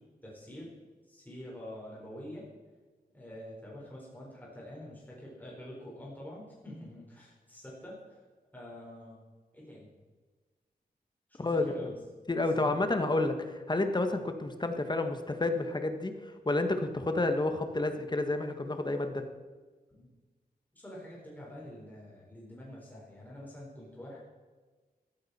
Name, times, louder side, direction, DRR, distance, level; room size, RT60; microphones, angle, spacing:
voice 1, 0.2-0.7 1.1-2.5 3.1-8.2 8.5-9.2 9.5-9.9 11.3-11.9 12.6-12.8 14.1-14.3 20.0-20.1 20.7-24.2, left 1 dB, 10° left, -5 dB, 4.5 m, -46 dB
voice 2, 11.4-11.7 12.3-19.2, left 2 dB, 25° left, 6 dB, 1.4 m, -30 dB
16.0 x 14.0 x 4.3 m, 1.3 s
wide cardioid pair, 130°, 16 cm